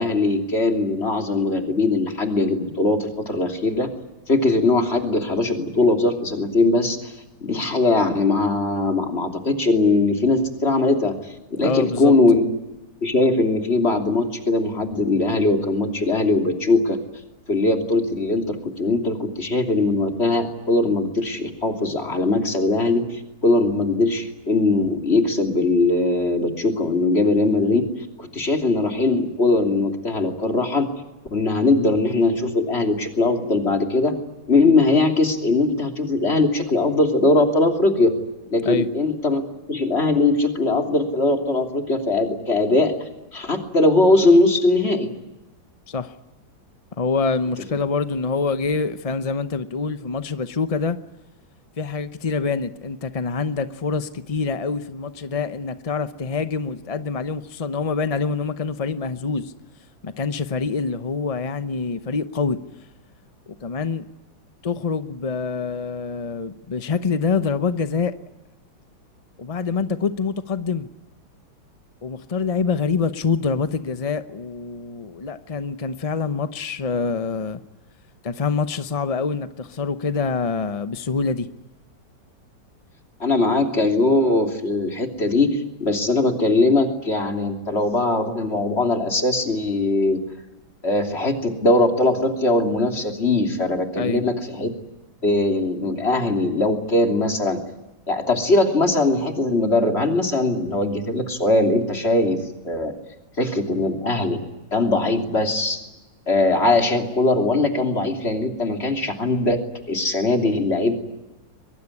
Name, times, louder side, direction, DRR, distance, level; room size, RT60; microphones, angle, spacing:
voice 1, 0.0-3.9 4.3-7.1 7.4-11.1 11.6-12.5 13.0-17.0 17.5-27.8 28.2-30.9 31.3-34.2 34.5-38.1 38.5-39.4 39.7-42.9 43.3-45.1 83.2-90.2 90.8-94.7 95.2-97.6 98.1-102.4 102.6-102.9 103.4-104.4 104.7-105.8 106.3-109.6 109.9-110.9, left 2 dB, 30° left, 3.3 m, -20 dB
voice 2, 11.6-12.1 38.6-38.9 45.9-46.1 47.0-51.0 51.8-59.5 60.0-62.6 63.5-64.0 64.6-68.2 69.4-70.9 72.0-77.6 78.2-81.5 94.0-94.2, left 4 dB, 45° left, 0.4 m, -25 dB
23.0 x 23.0 x 9.8 m
omnidirectional pair, 2.1 m